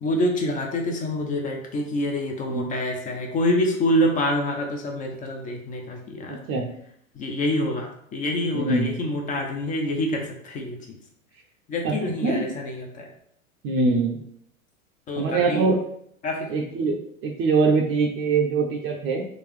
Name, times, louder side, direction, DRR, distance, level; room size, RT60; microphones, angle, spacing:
voice 1, 0.0-6.4 7.2-11.0 11.7-13.1 15.1-15.7 16.2-16.5, left 1 dB, 20° left, 2 dB, 0.3 m, -26 dB
voice 2, 6.3-6.7 8.5-8.9 11.8-11.9 12.2-12.5 13.6-14.2 15.2-15.8 16.5-19.3, right 4 dB, 30° right, 1 dB, 0.5 m, -23 dB
3.8 x 2.3 x 3.2 m, 0.69 s
hypercardioid pair, 105°, 42 cm